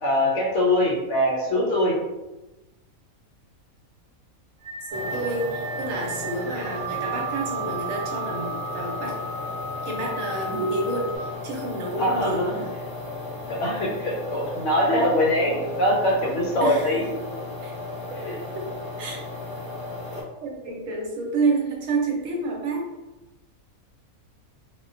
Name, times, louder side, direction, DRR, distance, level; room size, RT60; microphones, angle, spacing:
voice 1, 0.0-1.9 12.0-12.5 13.5-17.1 18.2-18.4, left 1 dB, 70° left, -2 dB, 0.9 m, -23 dB
sound 1, 4.6-11.2, right 3 dB, 35° left, 0.4 m, -34 dB
sound 2, 4.9-20.2, left 2 dB, 25° right, 0.8 m, -35 dB
voice 2, 4.9-9.2 9.8-12.7 16.6-16.9 17.6-17.7 18.5-18.6 19.0-19.2 20.4-22.9, right 3 dB, 75° right, -1 dB, 0.9 m, -29 dB
2.3 x 2.1 x 2.4 m, 1.0 s
omnidirectional pair, 1.4 m